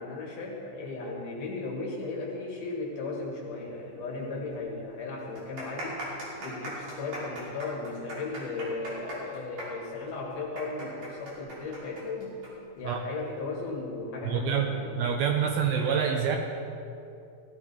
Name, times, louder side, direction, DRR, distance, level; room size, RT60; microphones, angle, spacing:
voice 1, 0.0-6.1 6.4-12.4 12.8-15.0, left 3 dB, 60° left, -2 dB, 2.7 m, -36 dB
sound 1, 4.2-4.3 4.5-4.6 5.2-12.5 12.8-12.9 13.6-13.9, right 1 dB, 50° right, 4.5 m, -40 dB
voice 2, 14.3-14.7 15.0-16.4, right 7 dB, 80° right, 3 dB, 2.3 m, -26 dB
17.0 x 14.5 x 3.4 m, 2.7 s
omnidirectional pair, 4.9 m